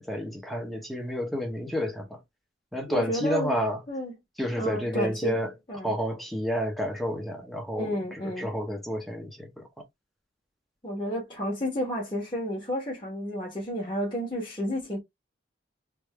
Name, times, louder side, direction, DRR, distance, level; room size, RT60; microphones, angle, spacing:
voice 1, 0.0-2.2 2.7-3.8 4.4-5.5 5.8-9.5, equal, ahead, 0.8 m, -30 dB
voice 2, 2.9-3.6 3.9-4.1 4.6-5.4 5.7-5.9 7.8-8.5 10.8-15.0, equal, 25° left, 1.3 m, -31 dB
3.5 x 2.6 x 3.2 m
head